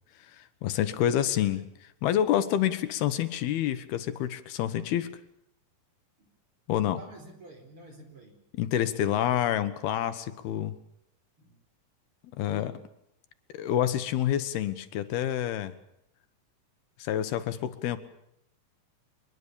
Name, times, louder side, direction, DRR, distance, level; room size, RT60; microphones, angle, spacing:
voice 1, 0.3-5.1 6.7-7.0 8.5-10.7 12.3-12.7 13.5-15.7 17.0-18.0, left 11 dB, 90° left, 11 dB, 3.3 m, -28 dB
voice 2, 0.9-1.7 6.2-6.3 6.8-8.4 11.4-11.6 12.5-12.8, right 1 dB, 35° right, 5 dB, 5.1 m, -49 dB
24.0 x 21.5 x 7.0 m, 0.77 s
omnidirectional pair, 4.3 m